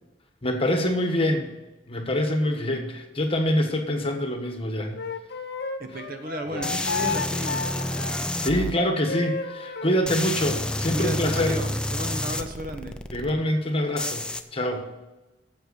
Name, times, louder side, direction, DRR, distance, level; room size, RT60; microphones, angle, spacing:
voice 1, 0.4-1.5 1.9-5.0 6.5-6.7 8.4-11.5 13.1-14.9, left 1 dB, 30° left, 4 dB, 1.4 m, -25 dB
Wind instrument woodwind instrument, 4.9-10.0, left 4 dB, 60° left, 1.0 m, -32 dB
voice 2, 5.8-7.7 10.9-13.0, equal, 50° right, 6 dB, 1.1 m, -33 dB
sound 1, 6.6-8.7 10.0-13.3 14.0-14.4, left 1 dB, 5° left, 0.5 m, -29 dB
7.9 x 7.4 x 8.1 m, 1.1 s
head